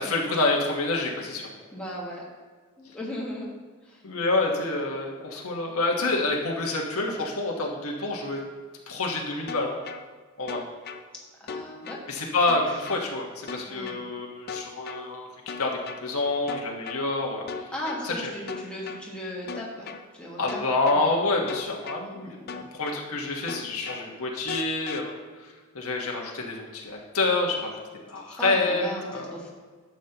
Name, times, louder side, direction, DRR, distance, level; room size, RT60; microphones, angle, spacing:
voice 1, 0.0-1.5 4.0-8.4 8.9-9.8 10.4-10.6 12.1-15.3 15.6-17.7 18.0-18.3 20.4-22.3 22.7-27.8 28.1-29.3, left 2 dB, 80° left, -1 dB, 1.3 m, -27 dB
voice 2, 1.7-2.2 2.8-3.6 3.8-4.0 11.4-12.0 13.7-14.1 17.7-20.6 20.9-21.1 22.0-22.7 28.3-29.5, equal, 5° left, -5 dB, 1.7 m, -37 dB
sound 1, 9.5-10.0 10.5-11.0 11.5-12.0 12.5-13.0 13.5-14.0 14.5-15.0 15.5-16.0 16.5-17.0 17.5-18.0 18.5-19.0 19.5-20.0 20.5-21.0 21.5-22.0 22.5-23.0 23.5-24.0 24.5-25.0, left 5 dB, 45° left, 0.5 m, -36 dB
11.5 x 7.3 x 3.0 m, 1.5 s
head